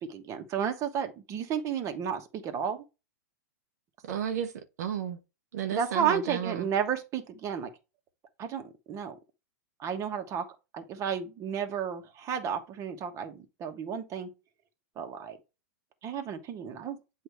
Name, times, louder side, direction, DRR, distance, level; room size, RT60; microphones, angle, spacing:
voice 1, 0.0-2.8 5.7-7.7 8.4-9.2 9.8-10.5 10.7-14.3 15.0-15.4 16.0-17.0, right 7 dB, 35° right, 1.3 m, -32 dB
voice 2, 4.0-5.2 5.5-6.7, right 9 dB, 70° right, 0.9 m, -33 dB
8.0 x 2.8 x 4.6 m
hypercardioid pair, 115°, 9 cm